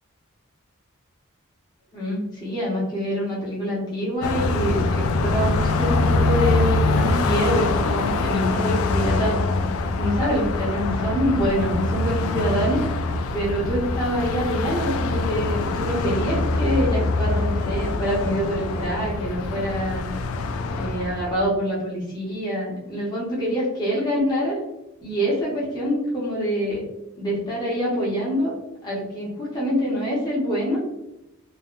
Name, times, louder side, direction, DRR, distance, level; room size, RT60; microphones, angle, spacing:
voice 1, 1.9-9.4 10.0-12.8 13.3-20.1 20.7-24.6 25.0-26.8 27.2-28.5 28.8-30.8, equal, 20° left, -6 dB, 0.9 m, -25 dB
Car passing by, 4.2-21.4, left 3 dB, 70° left, 0.3 m, -24 dB
3.3 x 2.1 x 2.4 m, 0.91 s
head